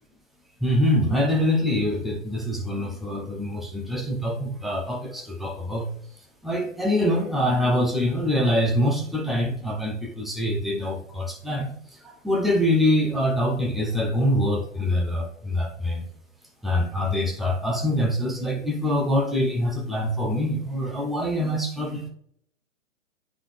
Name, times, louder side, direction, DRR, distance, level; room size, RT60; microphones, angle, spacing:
voice 1, 0.6-5.9 6.4-16.1 16.6-22.1, left 1 dB, ahead, -1 dB, 0.5 m, -24 dB
9.8 x 4.0 x 3.2 m, 0.68 s
figure-of-eight pair, 125°, 39 cm